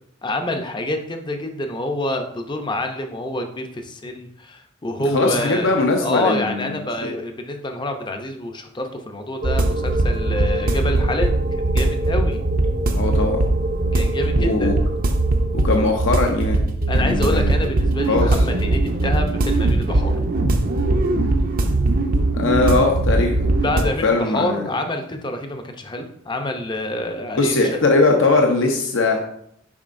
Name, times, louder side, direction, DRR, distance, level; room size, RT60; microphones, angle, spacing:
voice 1, 0.2-5.7 6.0-11.3 11.6-12.4 13.9-14.7 16.9-20.2 23.6-27.8, left 1 dB, 25° left, 5 dB, 0.6 m, -27 dB
voice 2, 5.1-7.1 13.0-13.4 14.4-14.7 15.5-17.5 18.1-18.4 22.3-23.4 24.0-24.7 27.3-29.2, left 3 dB, 70° left, 2 dB, 0.7 m, -20 dB
sound 1, 9.4-23.8, right 2 dB, 45° right, 0.6 m, -20 dB
7.2 x 5.3 x 2.6 m, 0.71 s
head